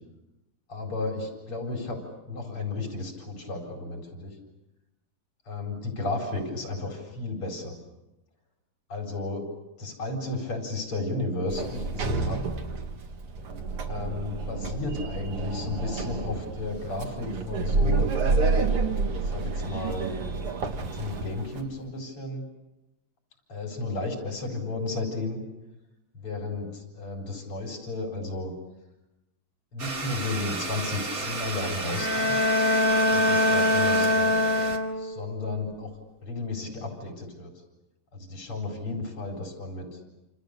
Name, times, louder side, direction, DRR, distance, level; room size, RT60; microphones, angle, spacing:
voice 1, 0.7-4.4 5.5-7.8 8.9-9.5 9.8-12.5 13.9-18.1 19.2-20.1 20.8-22.4 23.5-25.4 26.1-28.5 29.7-32.4 33.1-34.4 35.0-35.9 36.2-37.5 38.1-40.0, left 2 dB, 90° left, 1 dB, 5.3 m, -33 dB
Sliding door, 11.5-21.6, right 4 dB, 85° right, 2.7 m, -29 dB
Domestic sounds home sounds, 29.8-34.8, right 3 dB, 40° right, 2.5 m, -33 dB
Bowed string instrument, 31.9-35.3, left 1 dB, 60° left, 3.5 m, -23 dB
28.5 x 27.5 x 6.7 m, 0.98 s
omnidirectional pair, 2.4 m